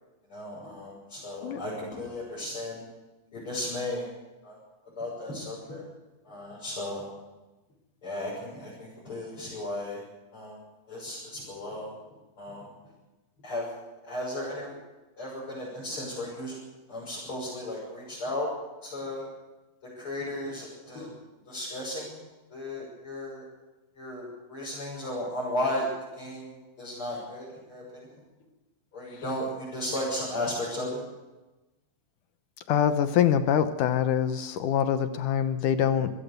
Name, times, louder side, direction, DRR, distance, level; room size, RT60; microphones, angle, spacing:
voice 1, 0.3-2.8 3.3-4.1 4.4-4.6 5.0-5.8 6.3-7.1 8.0-10.0 10.3-10.6 10.9-12.0 12.4-12.7 13.4-13.7 14.0-14.7 15.2-16.6 16.9-18.5 18.8-19.3 19.8-21.1 21.5-22.2 22.5-23.5 24.0-28.1 28.9-31.0, left 1 dB, 35° left, -6 dB, 7.1 m, -35 dB
voice 2, 32.7-36.1, left 9 dB, 75° left, 10 dB, 2.2 m, -24 dB
25.5 x 16.0 x 6.8 m, 1.1 s
omnidirectional pair, 4.0 m